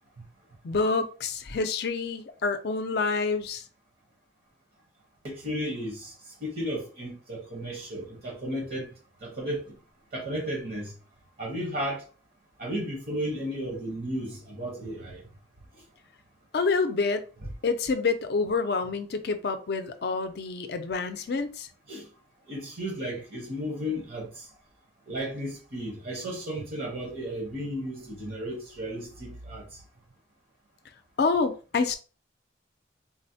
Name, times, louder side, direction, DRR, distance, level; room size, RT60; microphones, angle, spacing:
voice 1, 0.6-3.6 16.5-17.2 17.6-21.7 31.2-31.9, left 4 dB, 60° left, 0.4 m, -27 dB
voice 2, 5.2-6.1 6.4-8.9 9.2-9.6 10.1-10.9 11.4-12.0 12.6-15.2 17.4-17.5 21.9-22.1 22.5-24.5 25.1-29.6, equal, 55° right, 0.8 m, -34 dB
3.7 x 2.0 x 2.7 m
head